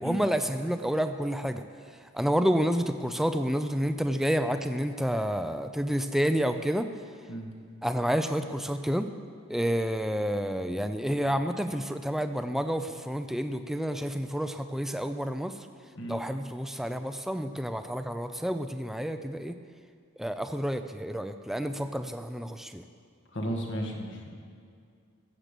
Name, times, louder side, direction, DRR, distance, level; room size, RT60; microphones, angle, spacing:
voice 1, 0.0-1.6 2.1-6.9 7.8-9.1 9.5-15.6 16.1-19.5 20.2-22.8, equal, ahead, 8 dB, 0.5 m, -29 dB
voice 2, 23.3-24.3, equal, 60° left, 1 dB, 1.9 m, -34 dB
15.5 x 7.5 x 6.8 m, 2.3 s
head